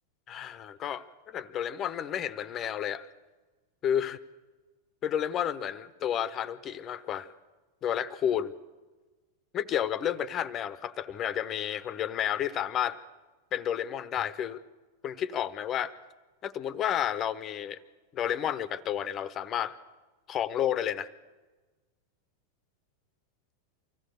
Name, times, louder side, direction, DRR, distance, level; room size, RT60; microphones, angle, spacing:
voice 1, 0.3-3.1 3.8-4.2 5.0-7.3 7.8-8.5 9.5-13.0 13.5-14.6 15.0-15.9 16.4-17.8 18.1-19.8 20.3-21.1, left 10 dB, 30° left, 16 dB, 0.9 m, -31 dB
25.0 x 16.5 x 6.6 m, 1.3 s
figure-of-eight pair, 90°, 0 cm